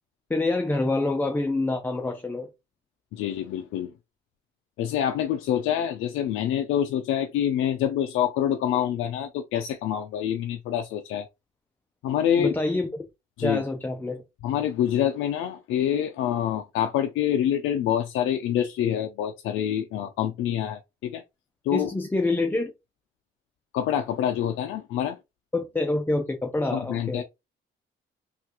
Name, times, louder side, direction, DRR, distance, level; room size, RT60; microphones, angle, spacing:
voice 1, 0.3-2.5 12.4-13.0 13.4-14.2 21.7-22.7 25.5-27.2, left 2 dB, 10° left, 0.5 m, -26 dB
voice 2, 3.1-3.9 4.8-11.3 12.0-12.5 13.4-13.6 14.4-21.2 21.7-21.9 23.7-25.2 26.7-27.2, left 10 dB, 90° left, 0.4 m, -26 dB
3.1 x 2.4 x 2.9 m
cardioid pair, 90°, 20 cm